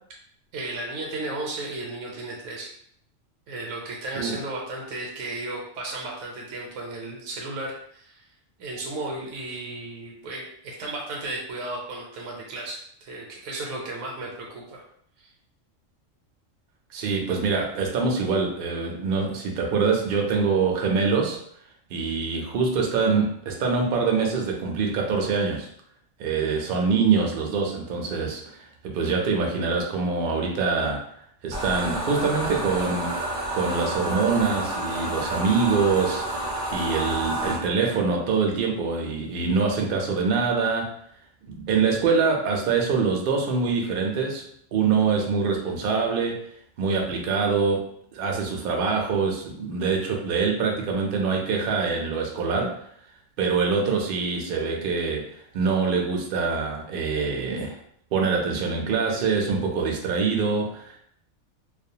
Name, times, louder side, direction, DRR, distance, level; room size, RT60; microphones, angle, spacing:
voice 1, 0.5-2.7 3.5-8.2 8.6-14.8, right 2 dB, 80° right, -1 dB, 0.9 m, -34 dB
voice 2, 16.9-21.4 21.9-25.7 26.2-31.0 31.4-33.1 33.5-40.9 41.5-46.4 46.8-52.9 53.4-57.8 58.1-61.0, right 5 dB, 65° right, 1 dB, 0.6 m, -24 dB
sound 1, 31.5-37.6, right 1 dB, 20° left, 0.5 m, -29 dB
2.4 x 2.1 x 2.7 m, 0.66 s
omnidirectional pair, 1.3 m